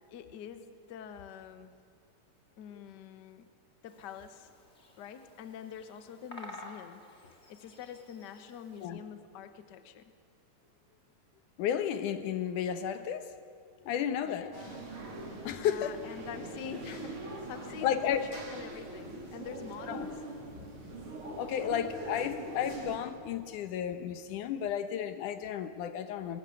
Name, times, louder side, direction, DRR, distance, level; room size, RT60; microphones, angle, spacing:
voice 1, 0.1-1.7 2.6-3.5 3.8-4.5 5.0-10.1 14.2-14.8 15.6-20.1, left 7 dB, 55° left, 10 dB, 1.2 m, -46 dB
Bird vocalization bird call bird song, 3.9-8.9, left 1 dB, 25° left, 2.1 m, -52 dB
voice 2, 11.6-13.3 13.8-14.5 15.4-16.0 17.8-18.3 19.9-20.1 20.5-21.1 21.4-26.4, left 9 dB, 85° left, 10 dB, 2.7 m, -33 dB
sound 1, 14.5-23.0, right 2 dB, 45° right, 3.9 m, -43 dB
22.5 x 19.5 x 9.6 m, 2.2 s
omnidirectional pair, 3.5 m